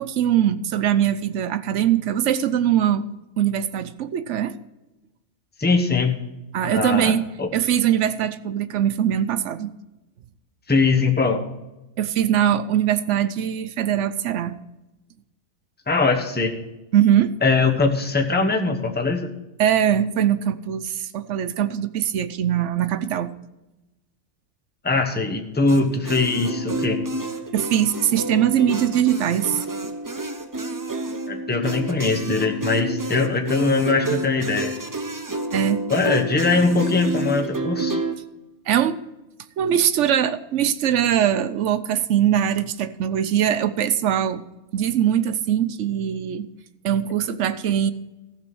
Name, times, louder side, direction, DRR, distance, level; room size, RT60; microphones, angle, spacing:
voice 1, 0.0-3.1 3.4-4.5 6.5-9.7 12.0-14.5 16.9-17.3 19.6-23.3 27.5-29.9 35.5-35.8 38.7-39.0 39.6-44.4 44.7-46.5 46.8-47.9, right 10 dB, 65° right, 13 dB, 0.9 m, -21 dB
voice 2, 5.6-6.1 6.6-7.5 10.7-11.4 15.9-16.6 17.4-19.3 24.8-27.0 31.3-34.7 35.9-38.0, left 3 dB, 10° left, 3 dB, 0.9 m, -21 dB
sound 1, 25.7-38.2, right 2 dB, 25° right, 0.4 m, -29 dB
14.5 x 6.2 x 6.1 m, 0.98 s
omnidirectional pair, 1.5 m